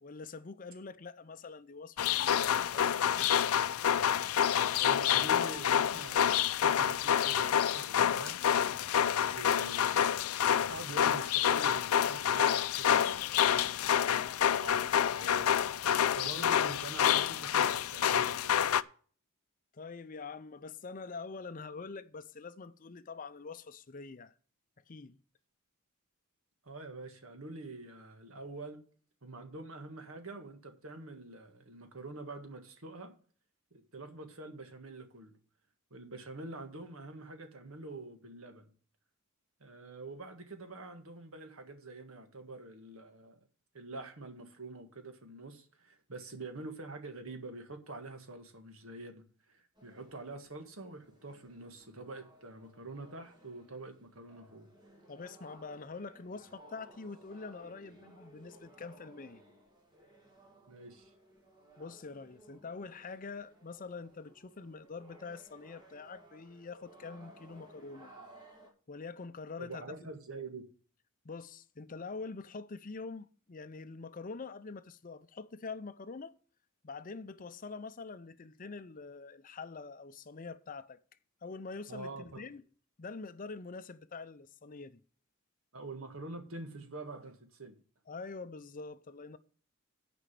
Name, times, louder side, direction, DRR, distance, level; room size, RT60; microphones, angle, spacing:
voice 1, 0.0-3.4 19.7-24.3 24.9-25.2 55.1-59.4 61.8-68.1 68.9-69.8 71.2-76.3 76.8-81.0 81.4-82.6 83.0-85.0 88.1-89.4, left 4 dB, 40° left, 0.5 m, -45 dB
sound 1, 2.0-18.8, left 9 dB, 85° left, 0.4 m, -28 dB
voice 2, 4.8-8.4 9.0-10.0 10.7-18.7 26.6-28.8 29.2-33.1 33.7-35.4 35.9-38.7 39.6-43.4 43.7-49.2 49.5-54.7 60.7-61.1 69.6-70.6 81.9-82.4 85.7-87.7, right 2 dB, 70° right, 1.7 m, -46 dB
sound 2, 49.8-68.7, right 1 dB, 20° right, 2.2 m, -59 dB
9.9 x 5.1 x 7.5 m
head